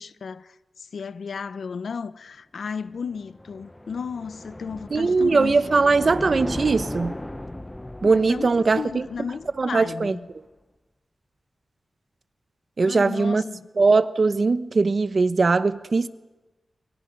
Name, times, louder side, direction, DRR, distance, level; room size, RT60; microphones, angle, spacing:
voice 1, 0.0-5.6 8.0-10.3 12.8-13.7, left 5 dB, 80° left, 0.8 m, -34 dB
Abstract Spaceship Flyby Descending A, 2.8-10.1, left 1 dB, 15° left, 0.8 m, -37 dB
voice 2, 4.9-7.2 8.0-9.0 9.6-10.1 12.8-13.4 13.8-16.1, right 4 dB, 50° right, 1.0 m, -20 dB
28.5 x 23.5 x 5.4 m
wide cardioid pair, 75°, 0 cm